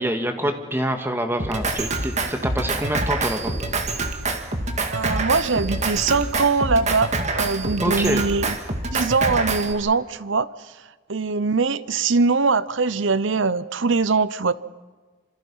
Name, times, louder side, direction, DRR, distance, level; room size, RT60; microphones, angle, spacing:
voice 1, 0.0-3.5 7.8-8.2, right 1 dB, 10° right, 5 dB, 1.9 m, -26 dB
Drum kit, 1.4-9.7, right 3 dB, 35° right, 2.0 m, -26 dB
voice 2, 4.9-8.5 8.9-10.5 11.1-14.5, right 4 dB, 70° right, 17 dB, 0.8 m, -22 dB
26.5 x 26.5 x 5.6 m, 1.3 s
head